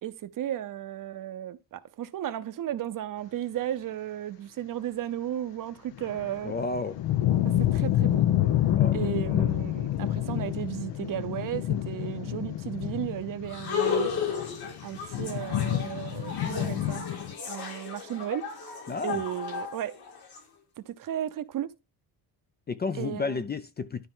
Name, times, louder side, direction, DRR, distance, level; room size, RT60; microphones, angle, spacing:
voice 1, 0.0-6.5 7.4-8.2 8.9-14.1 14.8-17.1 17.5-18.5 19.0-20.0 20.8-21.7 23.0-23.4, right 11 dB, 50° right, 0.7 m, -34 dB
sound 1, 6.0-17.3, left 12 dB, 75° left, 1.0 m, -28 dB
voice 2, 6.4-7.0 8.7-9.0 18.9-19.2 22.7-24.1, left 4 dB, 25° left, 0.4 m, -31 dB
sound 2, 13.5-20.4, left 6 dB, 60° left, 2.9 m, -34 dB
12.0 x 4.4 x 3.7 m
cardioid pair, 150°, 43 cm